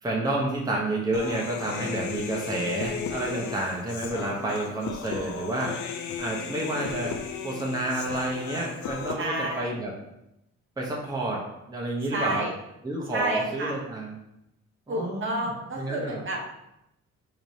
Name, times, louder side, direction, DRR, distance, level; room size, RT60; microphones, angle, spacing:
voice 1, 0.0-7.2 7.4-9.9 10.8-11.4 11.7-12.4 12.8-14.1 14.9-15.5 15.8-16.2, right 2 dB, 10° right, -3 dB, 0.8 m, -30 dB
Human voice, 1.1-9.1, left 7 dB, 70° left, 0.5 m, -35 dB
voice 2, 9.2-9.7 12.1-12.5 13.1-13.8 14.9-16.5, right 1 dB, 40° right, -1 dB, 0.9 m, -30 dB
4.7 x 2.8 x 2.7 m, 0.85 s
cardioid pair, 90°, 30 cm